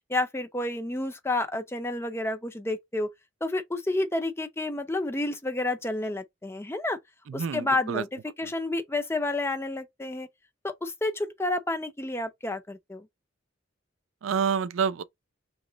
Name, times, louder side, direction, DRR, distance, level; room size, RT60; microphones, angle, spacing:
voice 1, 0.1-3.1 3.4-7.0 7.3-10.3 10.6-13.1, left 2 dB, 15° left, 0.5 m, -30 dB
voice 2, 7.3-8.0 14.2-15.0, right 6 dB, 90° right, 0.4 m, -28 dB
3.1 x 3.0 x 3.8 m
head